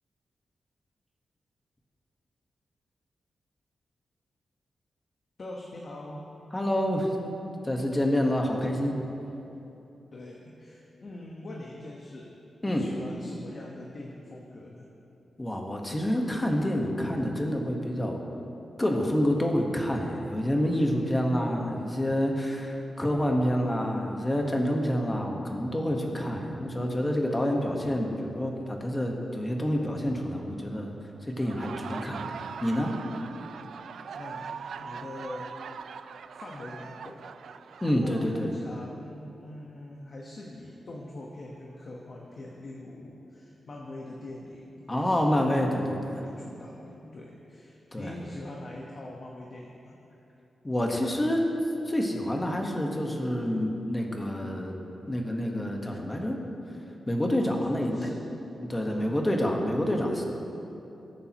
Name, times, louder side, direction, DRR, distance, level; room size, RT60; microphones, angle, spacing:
voice 1, 5.4-6.2 10.1-12.3 12.6-14.9 33.6-33.8 34.1-35.5 36.3-37.2 37.9-45.7 46.2-49.9 57.5-58.2 58.8-59.1, left 1 dB, 40° left, -2 dB, 1.1 m, -43 dB
voice 2, 6.5-7.1 7.6-9.0 12.6-12.9 15.4-18.2 18.8-30.9 31.3-32.3 32.6-32.9 37.8-38.5 44.9-46.2 47.9-48.1 50.6-51.4 51.8-54.8 55.1-56.4 57.1-58.1 58.7-60.2, equal, 15° left, 1 dB, 1.3 m, -27 dB
Laughter, 31.3-38.9, right 6 dB, 80° right, 0.3 m, -41 dB
20.5 x 8.6 x 3.0 m, 2.9 s
wide cardioid pair, 140°, 0 cm